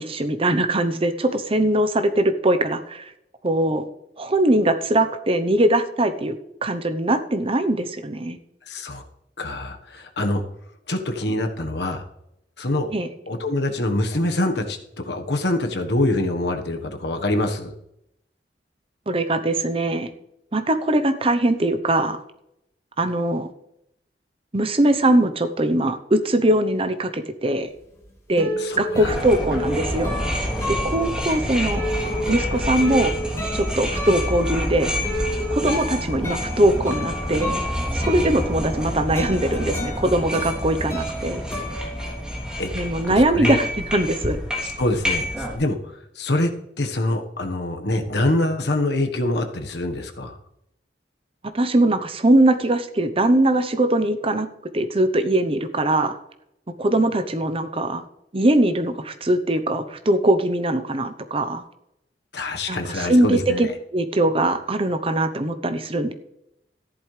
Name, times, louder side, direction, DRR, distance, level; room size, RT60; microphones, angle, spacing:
voice 1, 0.0-3.1 3.4-3.9 4.2-8.4 12.9-13.1 19.1-20.1 20.5-22.2 23.0-23.5 24.5-27.7 28.3-28.5 28.8-30.2 30.8-31.8 32.3-33.1 33.5-34.9 35.5-37.6 37.9-41.4 42.7-44.4 51.5-54.5 54.7-56.2 56.8-58.0 58.3-61.6 62.7-66.1, right 1 dB, 35° right, 9 dB, 0.9 m, -21 dB
voice 2, 8.7-9.0 9.4-10.4 10.9-12.0 12.6-12.9 13.3-17.7 28.6-29.2 42.6-42.7 43.1-43.6 44.8-46.5 46.8-50.4 62.3-63.7, left 1 dB, 70° left, 5 dB, 1.4 m, -25 dB
sound 1, 27.8-42.6 42.9-44.3, left 1 dB, 15° left, 3.4 m, -32 dB
sound 2, 29.0-45.5, equal, 5° right, 3.2 m, -28 dB
14.0 x 11.5 x 3.4 m, 0.80 s
head